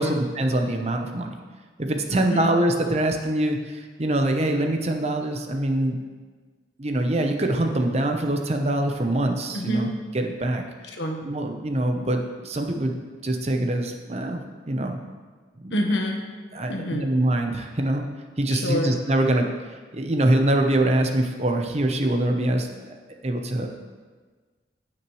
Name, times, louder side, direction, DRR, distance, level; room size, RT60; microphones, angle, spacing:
voice 1, 0.0-1.4 1.8-6.0 6.8-9.9 10.1-10.6 11.2-12.9 13.2-15.0 15.6-15.7 16.5-18.1 18.4-23.0 23.2-23.7, right 1 dB, 35° right, 4 dB, 0.8 m, -24 dB
voice 2, 2.1-2.5 9.5-9.9 10.9-11.2 15.7-16.2 16.7-17.0 18.5-19.0, left 1 dB, 85° left, 2 dB, 1.3 m, -27 dB
16.0 x 6.1 x 3.2 m, 1.4 s
head